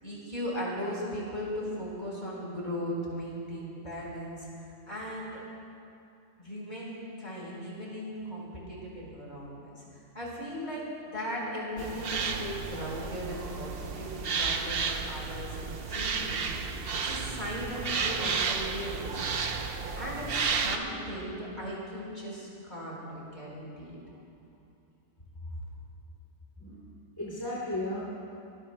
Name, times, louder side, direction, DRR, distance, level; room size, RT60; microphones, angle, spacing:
voice 1, 0.0-4.5 4.9-5.4 6.4-9.8 10.1-15.5 15.9-19.6 20.0-24.0, equal, 35° left, -5 dB, 4.6 m, -38 dB
sound 1, 11.8-20.8, right 5 dB, 55° right, 0.9 m, -32 dB
voice 2, 26.6-28.0, left 1 dB, 15° left, -6 dB, 2.8 m, -35 dB
24.0 x 21.0 x 2.2 m, 2.6 s
omnidirectional pair, 1.3 m